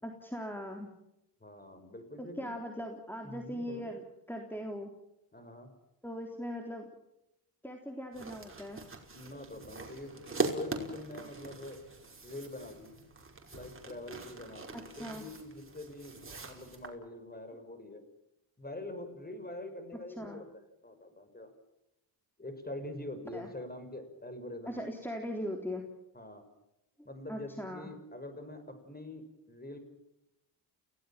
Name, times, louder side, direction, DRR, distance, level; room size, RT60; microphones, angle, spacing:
voice 1, 0.0-0.9 2.2-4.0 4.3-4.9 6.0-6.9 7.6-8.8 14.7-15.2 20.2-20.4 23.3-23.5 24.7-25.8 27.3-27.9, equal, 5° left, 2 dB, 3.7 m, -40 dB
voice 2, 1.4-2.6 3.2-3.9 5.3-5.7 9.1-10.2 10.5-11.8 12.2-12.9 13.5-16.2 16.4-18.0 18.6-20.5 20.8-21.5 22.4-24.8 25.4-25.5 26.1-26.5 27.0-29.8, left 1 dB, 20° left, 9 dB, 6.2 m, -44 dB
sound 1, 8.1-16.9, right 3 dB, 30° right, 5.2 m, -41 dB
29.5 x 17.5 x 7.5 m, 0.91 s
cardioid pair, 70°, 42 cm